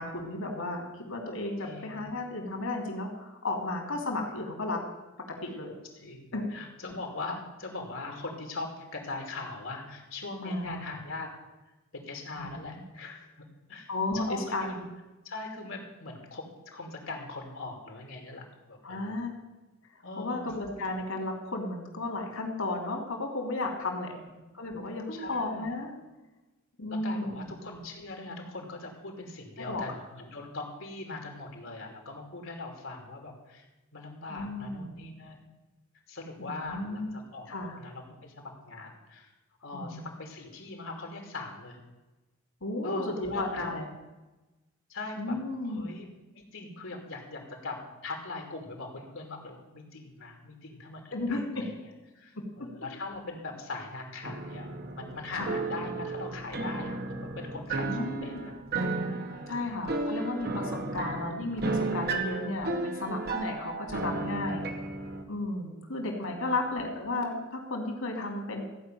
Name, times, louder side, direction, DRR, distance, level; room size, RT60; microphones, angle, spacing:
voice 1, 0.0-4.8 5.2-5.8 6.3-6.4 10.4-10.8 12.4-12.7 13.9-14.8 18.8-19.3 20.2-24.1 24.5-25.9 26.8-27.5 29.6-29.8 34.3-35.0 36.4-37.1 37.5-37.8 39.7-40.1 42.6-43.9 45.2-45.8 51.1-51.6 52.3-52.7 55.4-55.5 57.8-58.4 59.5-64.6 65.3-68.6, left 2 dB, 90° left, 2 dB, 2.9 m, -34 dB
voice 2, 1.6-2.0 6.0-11.4 11.9-14.9 15.2-19.2 20.0-20.5 24.1-24.4 24.8-25.7 26.9-33.7 33.9-35.4 36.1-39.3 39.6-41.8 42.8-43.8 44.9-45.4 45.6-51.7 52.1-54.7 54.9-58.5 59.3-59.7 66.3-66.7, left 3 dB, 70° left, 2 dB, 2.9 m, -41 dB
sound 1, 54.2-65.2, right 2 dB, 50° right, 1.1 m, -34 dB
15.0 x 5.4 x 9.1 m, 1.1 s
head